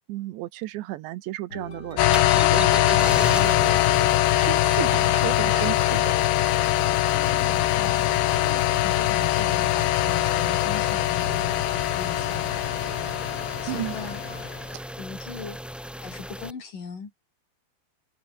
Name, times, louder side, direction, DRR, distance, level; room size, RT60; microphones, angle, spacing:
voice 1, 0.0-6.2 13.7-14.0 14.7-14.9, right 16 dB, 80° right, 3.2 m, -34 dB
sound 1, 1.5-14.5, left 2 dB, 20° left, 7.2 m, -43 dB
sound 2, 2.0-14.6, left 16 dB, 80° left, 3.3 m, -22 dB
sound 3, 2.1-16.5, equal, ahead, 0.6 m, -36 dB
voice 2, 7.2-13.2 13.6-14.2 15.0-15.6 16.0-17.1, left 5 dB, 50° left, 6.1 m, -39 dB
omnidirectional pair, 5.2 m